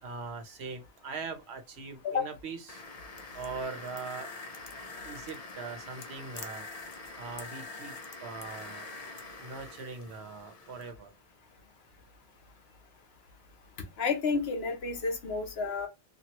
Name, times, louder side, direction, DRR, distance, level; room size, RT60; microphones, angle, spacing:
voice 1, 0.0-2.8 3.3-4.3 5.0-6.7 7.2-8.9 9.1-11.1, right 4 dB, 70° right, 1.0 m, -41 dB
sound 1, 2.7-10.9, left 3 dB, 45° left, 0.6 m, -44 dB
voice 2, 14.0-15.9, left 4 dB, 65° left, 1.0 m, -30 dB
3.0 x 2.5 x 2.9 m
omnidirectional pair, 1.1 m